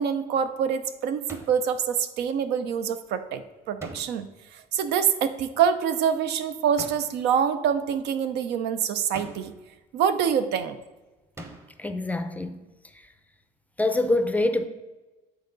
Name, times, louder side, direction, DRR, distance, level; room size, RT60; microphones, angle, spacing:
voice 1, 0.0-4.3 4.5-9.5 9.9-10.8, right 7 dB, 80° right, 0.6 m, -25 dB
sound 1, 1.3-1.7 3.8-4.4 6.8-7.3 9.1-9.7 11.4-11.9, right 1 dB, 15° right, 0.8 m, -43 dB
voice 2, 11.8-12.6 13.8-14.7, left 2 dB, 10° left, 0.4 m, -25 dB
8.8 x 3.9 x 3.8 m
cardioid pair, 110°, 17 cm